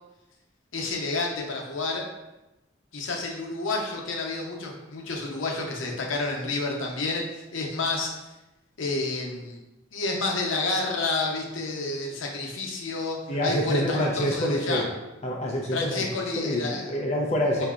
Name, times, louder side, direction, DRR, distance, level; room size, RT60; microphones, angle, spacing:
voice 1, 0.7-2.0 2.9-8.2 8.8-9.6 9.9-13.2 13.4-14.8 15.7-17.0 17.6-17.7, left 3 dB, 90° left, 0 dB, 0.7 m, -30 dB
voice 2, 13.3-14.9 15.2-16.1 16.4-17.7, equal, 35° left, -1 dB, 0.4 m, -26 dB
4.9 x 2.7 x 2.3 m, 0.99 s
head